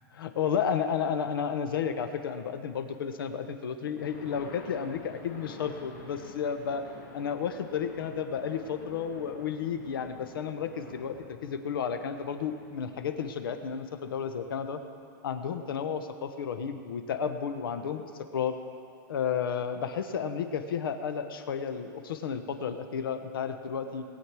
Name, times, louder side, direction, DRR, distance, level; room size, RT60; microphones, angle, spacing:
voice 1, 0.2-6.9 7.1-14.8 15.2-18.6 19.1-24.0, left 7 dB, 90° left, 8 dB, 1.1 m, -32 dB
sound 1, 4.0-14.7, left 3 dB, 45° left, 2.1 m, -50 dB
20.0 x 8.6 x 4.8 m, 2.5 s
supercardioid pair, 175°, 12 cm